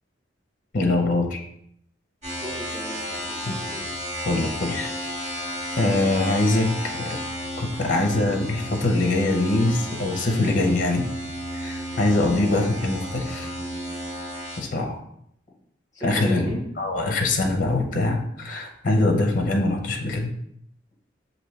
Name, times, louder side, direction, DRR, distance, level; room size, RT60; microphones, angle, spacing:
voice 1, 0.7-1.4 3.5-3.6 4.3-4.9 5.8-6.7 7.0-7.2 7.6-11.1 11.5-13.5 14.6-15.0 16.0-20.3, left 2 dB, 45° left, 3 dB, 0.6 m, -23 dB
sound 1, 2.2-14.6, equal, 40° right, 1.8 m, -33 dB
voice 2, 2.4-3.9 12.2-12.4 15.9-16.6, left 1 dB, 20° left, 0 dB, 1.1 m, -36 dB
6.4 x 2.6 x 3.2 m, 0.70 s
head